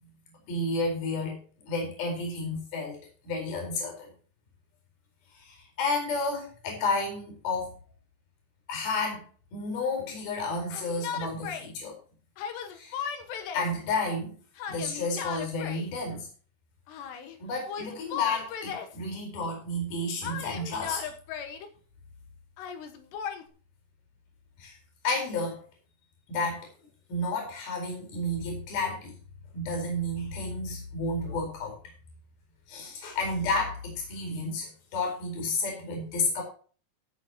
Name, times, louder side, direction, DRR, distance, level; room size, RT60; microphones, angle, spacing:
voice 1, 0.5-1.4 1.7-3.0 3.2-4.1 5.4-7.7 8.7-9.2 9.5-12.0 12.7-13.0 13.5-14.3 14.7-16.3 17.4-21.0 24.6-24.7 25.0-25.6 26.3-26.6 27.1-29.1 29.5-31.8 32.7-36.4, left 2 dB, 60° left, 0 dB, 6.3 m, -31 dB
Yell, 10.7-11.7 12.4-13.7 14.6-15.9 16.9-17.4 17.7-19.0 20.2-21.7 22.6-23.4, left 7 dB, 75° left, 3.6 m, -36 dB
16.0 x 9.7 x 3.0 m, 0.40 s
omnidirectional pair, 5.0 m